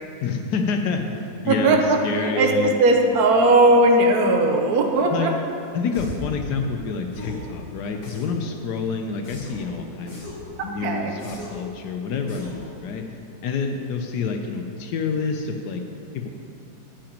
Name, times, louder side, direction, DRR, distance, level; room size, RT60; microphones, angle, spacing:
voice 1, 0.2-1.2 1.4-2.7 5.1-5.3 5.7-10.2 10.6-13.1 13.4-15.8 16.1-16.3, left 5 dB, 80° left, 4 dB, 1.3 m, -27 dB
voice 2, 1.5-2.5 2.8-5.3 10.8-11.1, right 2 dB, 65° right, 2 dB, 1.4 m, -18 dB
sound 1, 5.9-6.3 7.1-7.5 8.0-8.5 9.2-9.7 10.1-10.5 11.2-11.7 12.3-12.7, left 1 dB, 45° left, 2.3 m, -38 dB
10.0 x 5.8 x 8.7 m, 2.6 s
omnidirectional pair, 1.8 m